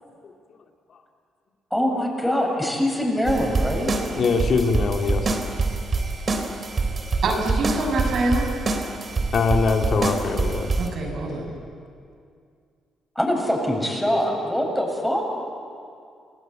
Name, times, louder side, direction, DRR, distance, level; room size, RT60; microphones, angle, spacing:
voice 1, 1.7-3.9 13.2-15.2, equal, 5° left, 0 dB, 7.4 m, -23 dB
sound 1, 3.3-10.9, right 3 dB, 40° right, 3.5 m, -26 dB
voice 2, 4.2-5.4 9.3-10.7, left 4 dB, 55° left, 3 dB, 2.3 m, -22 dB
voice 3, 7.2-8.5 10.8-11.6, right 2 dB, 65° right, 1 dB, 6.9 m, -25 dB
29.0 x 19.5 x 8.9 m, 2.3 s
cardioid pair, 90°, 0 cm